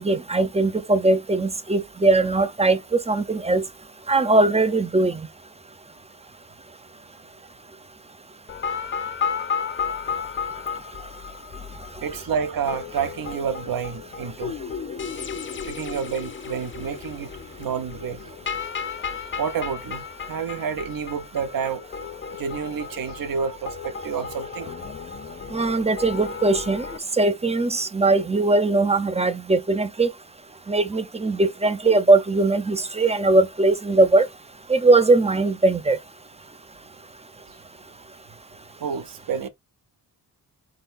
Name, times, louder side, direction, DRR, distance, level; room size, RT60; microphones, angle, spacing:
voice 1, 0.0-2.8 3.1-3.6 4.1-5.2 25.5-26.9 27.1-30.1 30.7-34.3 34.7-36.0, right 2 dB, 15° right, 0.5 m, -20 dB
sound 1, 8.5-27.0, left 6 dB, 30° left, 0.4 m, -34 dB
voice 2, 12.0-14.6 15.6-17.3 17.6-18.3 19.3-21.9 22.3-24.8 38.8-39.5, right 6 dB, 55° right, 0.8 m, -29 dB
4.3 x 3.9 x 2.5 m
cardioid pair, 90°, 41 cm